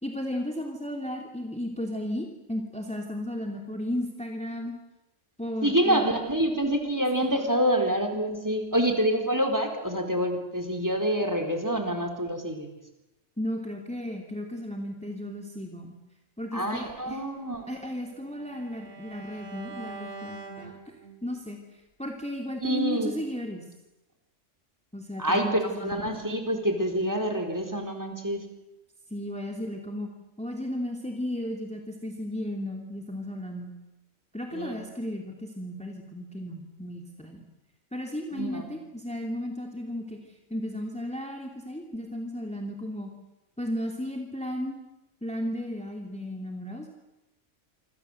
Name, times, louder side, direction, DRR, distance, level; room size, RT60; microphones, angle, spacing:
voice 1, 0.0-4.7 5.4-6.1 7.2-7.4 13.4-15.9 16.4-17.2 17.7-20.8 21.2-21.6 22.0-23.7 24.9-26.1 29.1-30.1 30.4-33.7 34.3-37.4 37.9-43.1 43.6-44.8 45.2-46.9, left 1 dB, 5° left, 2 dB, 3.0 m, -34 dB
voice 2, 5.6-12.7 16.5-17.7 22.6-23.1 25.2-28.4 34.5-34.8 38.3-38.8, right 1 dB, 15° right, 6 dB, 4.2 m, -27 dB
Bowed string instrument, 17.2-21.4, right 4 dB, 75° right, 4.7 m, -44 dB
27.0 x 26.5 x 8.0 m, 0.97 s
omnidirectional pair, 1.3 m